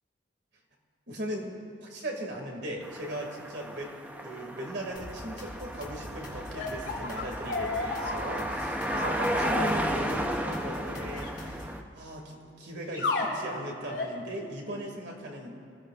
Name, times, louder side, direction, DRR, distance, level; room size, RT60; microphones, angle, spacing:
voice 1, 1.1-3.9 4.2-11.6 11.9-15.6, right 1 dB, 60° right, 0 dB, 2.3 m, -38 dB
sound 1, 2.8-11.8, right 1 dB, 10° right, 0.7 m, -34 dB
sound 2, 5.0-11.8, left 1 dB, 40° left, 2.2 m, -45 dB
sound 3, 6.6-9.7 10.9-11.3 12.9-13.3 13.9-14.2, left 3 dB, 75° left, 3.5 m, -33 dB
25.0 x 15.0 x 2.5 m, 2.3 s
head